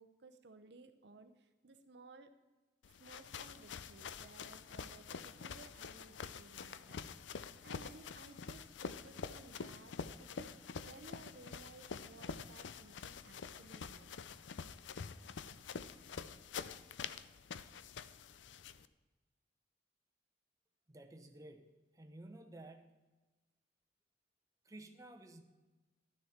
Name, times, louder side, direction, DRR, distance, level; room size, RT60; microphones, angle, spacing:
voice 1, 0.0-2.3 2.9-10.5 10.9-14.1 15.5-15.6, right 3 dB, 65° right, 8 dB, 0.7 m, -58 dB
sound 1, 2.8-18.9, left 6 dB, 85° left, 0.5 m, -47 dB
voice 2, 20.9-21.7 21.9-23.0 24.6-25.4, right 1 dB, 20° right, 4 dB, 0.9 m, -53 dB
12.0 x 9.7 x 4.3 m, 1.2 s
head